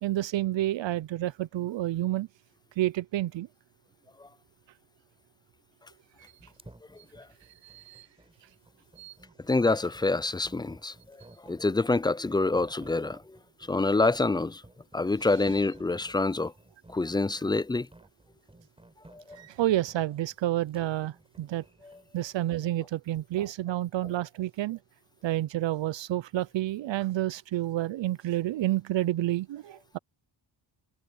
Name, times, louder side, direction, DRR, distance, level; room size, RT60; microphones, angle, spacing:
voice 1, 0.0-2.3 2.8-3.5 6.2-6.3 7.6-8.1 9.0-9.1 19.3-21.7 22.1-24.8 25.2-30.0, right 14 dB, 70° right, 0.7 m, -29 dB
sound 1, 6.4-22.7, right 1 dB, 10° right, 5.4 m, -55 dB
voice 2, 6.9-7.3 9.4-14.6 14.9-16.5 16.9-17.9 19.1-19.4 21.8-22.0, left 3 dB, 10° left, 0.4 m, -27 dB
cardioid pair, 95°, 47 cm